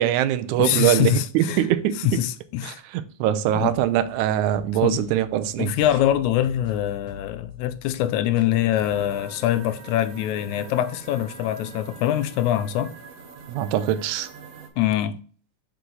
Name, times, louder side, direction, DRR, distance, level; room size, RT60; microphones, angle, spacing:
voice 1, 0.0-2.2 2.6-5.7 13.5-14.3, right 12 dB, 90° right, 2.0 m, -23 dB
voice 2, 0.6-1.6 2.1-2.8 3.5-3.7 4.8-5.0 5.6-12.9 14.8-15.2, left 12 dB, 85° left, 1.9 m, -24 dB
sound 1, 4.0-8.5 8.8-9.2, left 4 dB, 35° right, 2.1 m, -45 dB
sound 2, 8.7-14.7, right 5 dB, 65° right, 1.9 m, -44 dB
6.8 x 4.6 x 3.9 m
omnidirectional pair, 3.4 m